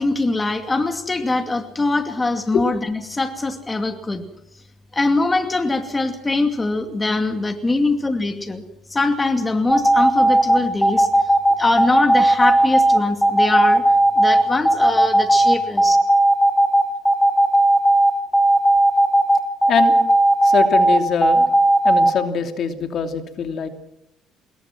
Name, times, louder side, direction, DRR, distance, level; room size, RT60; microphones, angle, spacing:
voice 1, 0.0-4.3 4.9-8.6 8.9-11.1 11.6-13.8 14.2-16.0, left 2 dB, 20° left, 7 dB, 2.5 m, -22 dB
sound 1, 9.7-22.1, right 1 dB, ahead, 4.6 m, -15 dB
voice 2, 20.4-21.5 21.8-23.7, left 6 dB, 55° left, 6 dB, 2.9 m, -23 dB
26.5 x 21.5 x 6.1 m, 0.76 s
cardioid pair, 100°, 0 cm